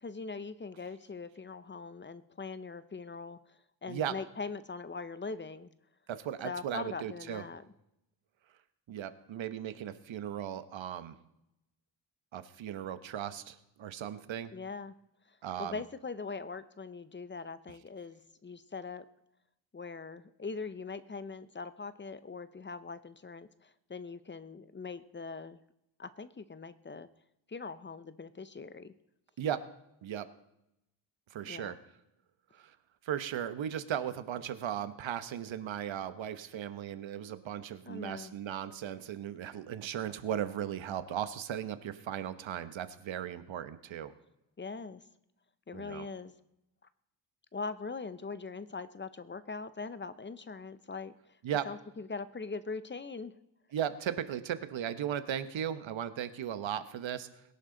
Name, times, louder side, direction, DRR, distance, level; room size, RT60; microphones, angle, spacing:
voice 1, 0.0-5.7 6.4-7.6 14.5-14.9 15.3-19.0 19.7-25.6 26.0-27.1 27.5-28.9 31.4-31.8 37.9-38.3 44.6-45.0 45.7-46.3 47.5-51.1 51.6-53.3, left 4 dB, 25° left, 14 dB, 0.7 m, -41 dB
voice 2, 6.1-7.4 8.9-11.1 12.3-14.5 15.4-15.8 29.4-29.6 30.0-30.3 31.3-31.8 32.5-32.8 33.0-44.1 45.7-46.1 51.4-51.7 53.7-57.3, right 10 dB, 80° right, 11 dB, 1.1 m, -37 dB
21.5 x 11.0 x 3.9 m, 0.85 s
cardioid pair, 105°, 45 cm